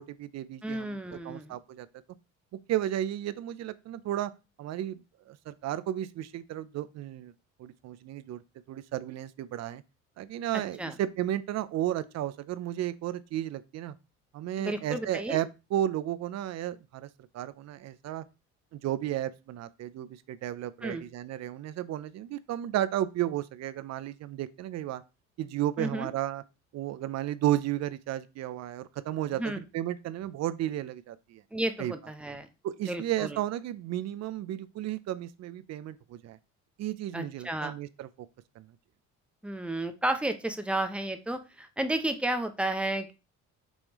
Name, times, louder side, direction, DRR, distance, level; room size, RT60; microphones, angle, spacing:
voice 1, 0.0-1.0 1.2-1.9 2.7-4.3 4.6-5.0 5.3-7.3 7.6-8.4 8.7-9.8 10.2-13.9 14.3-17.1 17.3-18.2 18.7-25.0 25.4-26.4 26.7-31.4 31.8-31.9 32.6-36.4 36.8-38.1 38.6-38.7, right 12 dB, 55° right, 0.5 m, -33 dB
voice 2, 0.6-1.6 10.8-11.0 14.6-15.4 20.8-21.0 25.8-26.1 29.3-29.6 31.5-32.5 32.9-33.4 37.1-37.7 39.4-43.1, right 1 dB, 5° right, 0.7 m, -32 dB
5.4 x 3.2 x 3.0 m
supercardioid pair, 85°, 32 cm